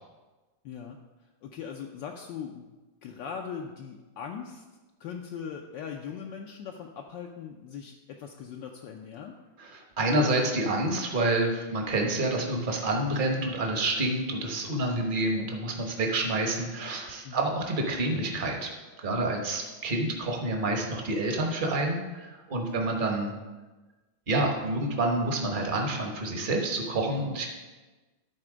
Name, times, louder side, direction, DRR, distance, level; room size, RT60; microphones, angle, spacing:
voice 1, 0.6-1.0 1.4-2.7 3.0-4.6 5.0-9.4 17.2-17.6 22.6-22.8, left 7 dB, 70° left, 2 dB, 1.2 m, -40 dB
voice 2, 9.6-18.7 19.0-23.3 24.3-27.5, right 2 dB, 35° right, 1 dB, 0.9 m, -28 dB
11.0 x 4.3 x 5.0 m, 1.2 s
omnidirectional pair, 2.2 m